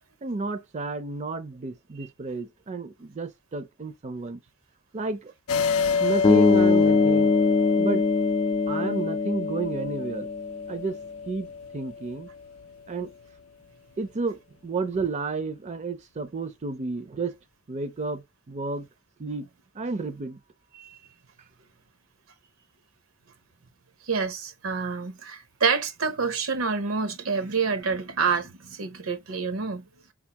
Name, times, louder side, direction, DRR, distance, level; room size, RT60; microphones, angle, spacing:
voice 1, 0.2-4.4 4.9-5.3 6.0-7.3 7.8-8.0 8.7-10.3 10.7-11.0 11.3-11.5 11.7-12.3 12.9-13.1 14.0-17.3 17.7-18.9 19.2-19.5 19.7-20.4, right 3 dB, 35° right, 0.5 m, -31 dB
sound 1, 5.5-12.6, left 5 dB, 85° left, 0.4 m, -28 dB
sound 2, 6.2-10.4, left 4 dB, 20° left, 0.3 m, -23 dB
voice 2, 24.1-29.8, right 5 dB, 75° right, 0.8 m, -27 dB
4.1 x 3.6 x 2.9 m
head